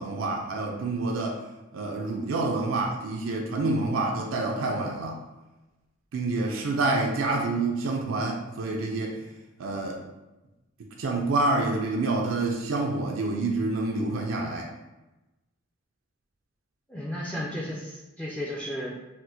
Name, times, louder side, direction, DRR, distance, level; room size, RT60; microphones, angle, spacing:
voice 1, 0.0-1.4 1.7-5.2 6.1-9.2 9.6-10.0 11.0-14.7, right 2 dB, 85° right, 0 dB, 0.4 m, -27 dB
voice 2, 16.9-19.0, equal, 5° left, -5 dB, 0.4 m, -34 dB
4.2 x 2.1 x 2.6 m, 1.0 s
head